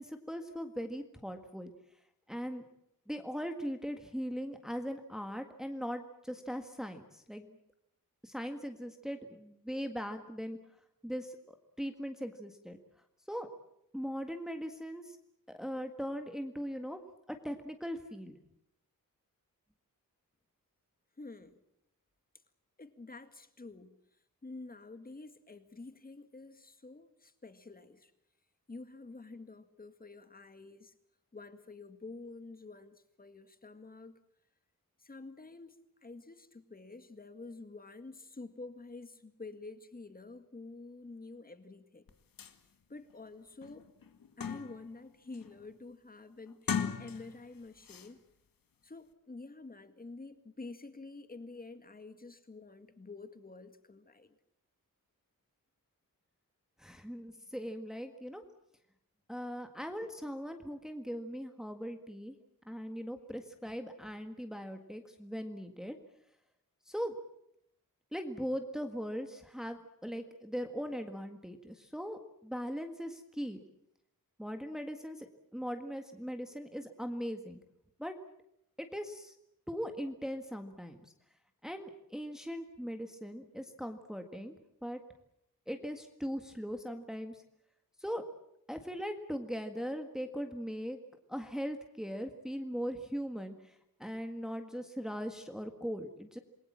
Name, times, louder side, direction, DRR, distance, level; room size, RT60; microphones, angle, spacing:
voice 1, 0.0-1.7 2.3-2.6 3.1-7.5 8.2-10.6 11.0-12.8 13.3-13.5 13.9-15.2 15.5-17.0 17.3-18.4 56.8-58.4 59.3-62.3 62.7-66.0 66.9-67.1 68.1-73.6 74.4-75.3 75.5-77.6 78.0-78.1 78.8-79.3 79.7-81.1 81.6-84.5 84.8-85.0 85.7-87.4 88.0-88.2 88.7-91.0 91.3-96.4, equal, ahead, 5 dB, 1.7 m, -40 dB
voice 2, 21.2-21.6 22.8-24.0 24.4-28.1 28.7-30.9 31.3-34.2 35.0-42.1 42.9-43.9 44.4-48.2 48.8-54.4, left 3 dB, 25° left, 9 dB, 2.0 m, -49 dB
sound 1, 42.1-42.2 42.4-42.6 43.1-43.2 43.6-44.9 45.3-45.7 46.5-47.5 47.8-48.1, left 7 dB, 80° left, 1.9 m, -38 dB
28.0 x 21.5 x 7.5 m, 0.78 s
wide cardioid pair, 145°, 34 cm